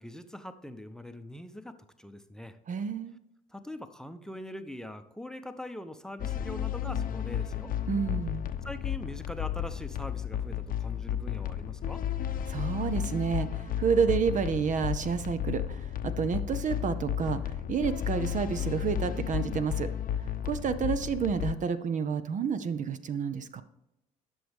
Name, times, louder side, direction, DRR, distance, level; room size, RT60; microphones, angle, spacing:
voice 1, 0.0-2.6 3.5-7.7 8.6-12.1, left 1 dB, 5° left, 8 dB, 0.8 m, -42 dB
voice 2, 2.7-3.2 7.9-8.5 12.5-19.9 20.4-23.6, right 6 dB, 45° right, 12 dB, 0.6 m, -30 dB
sound 1, 6.2-21.5, left 10 dB, 55° left, 0.7 m, -33 dB
11.0 x 6.3 x 3.5 m, 0.84 s
hypercardioid pair, 65°, 18 cm